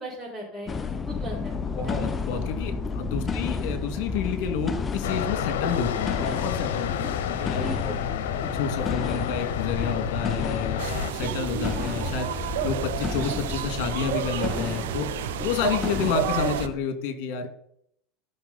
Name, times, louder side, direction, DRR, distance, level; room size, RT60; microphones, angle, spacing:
voice 1, 0.0-2.0 3.1-3.2 6.8-7.1 7.6-8.0, right 1 dB, 10° right, -10 dB, 5.0 m, -39 dB
sound 1, 0.7-16.8, left 4 dB, 20° left, 0.8 m, -32 dB
voice 2, 1.7-6.9 7.2-8.0 8.5-17.5, left 6 dB, 65° left, 7 dB, 2.4 m, -30 dB
sound 2, 5.0-11.1, left 9 dB, 85° left, 1.0 m, -29 dB
sound 3, 10.8-16.7, right 11 dB, 85° right, 0.7 m, -31 dB
13.5 x 6.2 x 4.3 m, 0.70 s
supercardioid pair, 120°, 0 cm